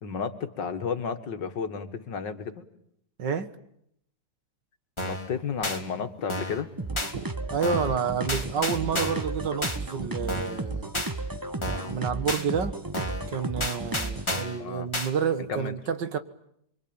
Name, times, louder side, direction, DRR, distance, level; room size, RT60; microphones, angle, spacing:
voice 1, 0.0-2.7 5.0-6.7 14.6-14.9 15.5-15.7, left 6 dB, 75° left, 2.4 m, -32 dB
voice 2, 3.2-3.5 7.5-10.9 11.7-12.7 13.3-16.2, right 6 dB, 75° right, 2.2 m, -29 dB
sound 1, 5.0-5.3 5.6-5.8 6.3-6.6 7.0-7.1 7.6-7.9 8.3-9.3 9.6-9.8 10.3-10.6 10.9-11.1 11.6-11.9 12.3-12.4 12.9-13.3 13.6-14.6 14.9-15.1, left 1 dB, 15° left, 3.0 m, -31 dB
sound 2, 6.8-14.4, right 2 dB, 15° right, 1.0 m, -34 dB
28.0 x 23.5 x 8.9 m
omnidirectional pair, 1.9 m